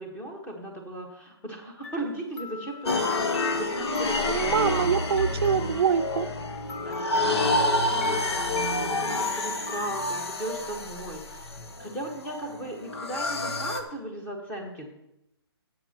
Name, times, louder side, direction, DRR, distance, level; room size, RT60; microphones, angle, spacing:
voice 1, 0.0-4.9 6.9-14.9, right 1 dB, 10° left, 2 dB, 1.5 m, -37 dB
sound 1, 1.8-6.2 6.7-10.7, left 6 dB, 30° left, 0.9 m, -42 dB
sound 2, 2.8-13.8, left 2 dB, 70° left, 1.2 m, -28 dB
voice 2, 4.2-6.3, right 7 dB, 65° right, 10 dB, 0.5 m, -25 dB
17.5 x 7.8 x 3.0 m, 0.85 s
hypercardioid pair, 155°, 14 cm